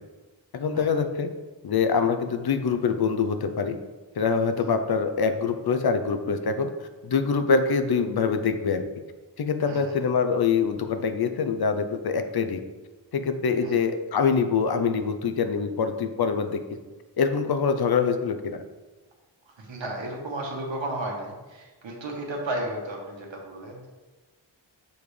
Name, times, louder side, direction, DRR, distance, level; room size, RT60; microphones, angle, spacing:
voice 1, 0.5-1.3 1.6-3.8 4.2-6.7 7.0-8.8 9.4-12.6 13.1-16.6 17.2-18.6, left 5 dB, 55° left, 8 dB, 0.6 m, -24 dB
voice 2, 19.5-23.9, right 1 dB, 85° right, 0 dB, 1.4 m, -34 dB
7.0 x 5.2 x 3.2 m, 1.2 s
wide cardioid pair, 145°, 44 cm